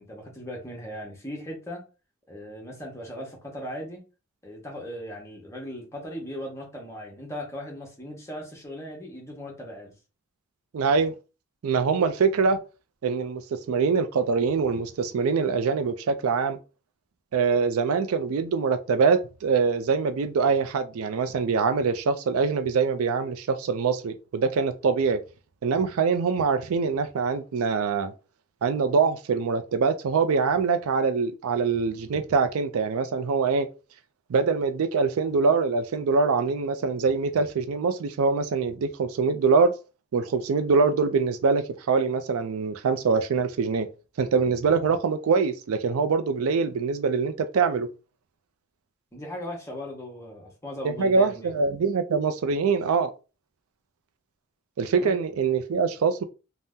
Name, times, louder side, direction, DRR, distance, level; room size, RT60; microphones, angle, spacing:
voice 1, 0.0-1.8 2.3-4.0 4.4-9.9 49.1-51.5 55.0-55.2, equal, 15° left, 0.9 m, -38 dB
voice 2, 10.7-11.1 11.6-12.6 13.0-16.6 17.3-25.2 25.6-28.1 28.6-33.7 34.3-39.7 40.1-43.9 44.2-47.9 50.8-53.1 54.8-56.2, right 5 dB, 80° right, 0.4 m, -24 dB
2.7 x 2.1 x 3.5 m
head